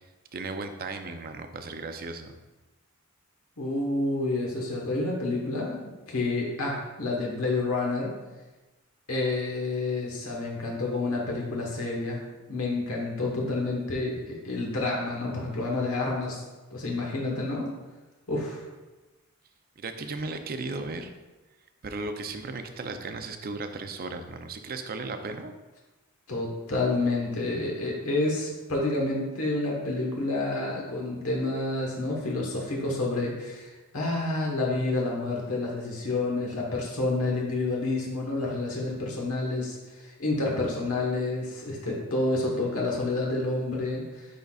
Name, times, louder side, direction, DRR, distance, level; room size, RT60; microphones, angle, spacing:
voice 1, 0.3-2.4 19.8-21.1 21.8-25.5, right 3 dB, 45° right, 7 dB, 0.5 m, -36 dB
voice 2, 3.6-5.8 6.1-8.1 9.1-12.2 12.5-16.4 16.7-17.7 18.3-18.6 26.3-44.3, left 2 dB, 80° left, -2 dB, 1.3 m, -29 dB
10.0 x 3.9 x 2.4 m, 1.1 s
head